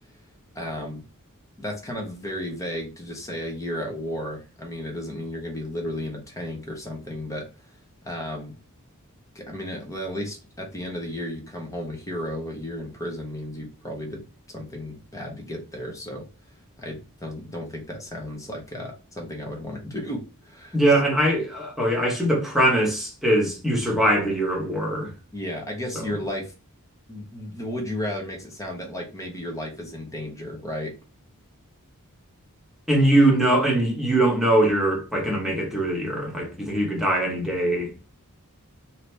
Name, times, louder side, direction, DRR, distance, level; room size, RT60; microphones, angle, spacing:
voice 1, 0.5-1.0 1.6-7.5 8.0-8.5 9.3-14.2 14.5-16.2 16.8-20.8 25.3-26.5 27.1-31.0, left 1 dB, 15° left, 0.8 m, -33 dB
voice 2, 20.7-25.1 25.9-26.1 32.9-37.9, right 1 dB, ahead, 1.1 m, -22 dB
2.8 x 2.7 x 3.3 m
head